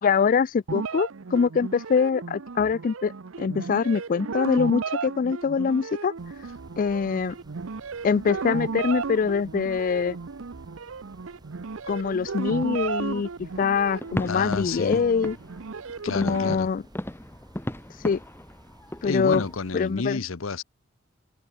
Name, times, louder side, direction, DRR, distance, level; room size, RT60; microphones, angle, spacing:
voice 1, 0.0-3.1 3.4-6.1 6.8-7.3 8.0-10.2 11.9-13.3 13.6-15.4 16.1-16.8 18.0-18.2 19.0-19.4 19.7-20.2, left 5 dB, 45° left, 0.3 m, -24 dB
sound 1, 0.7-16.5, right 5 dB, 80° right, 0.7 m, -35 dB
sound 2, 6.2-19.9, right 1 dB, 20° right, 2.1 m, -54 dB
sound 3, 14.0-19.6, left 1 dB, 10° left, 1.0 m, -36 dB
voice 2, 14.3-15.0 16.0-16.7 19.0-20.6, left 4 dB, 90° left, 0.9 m, -30 dB
head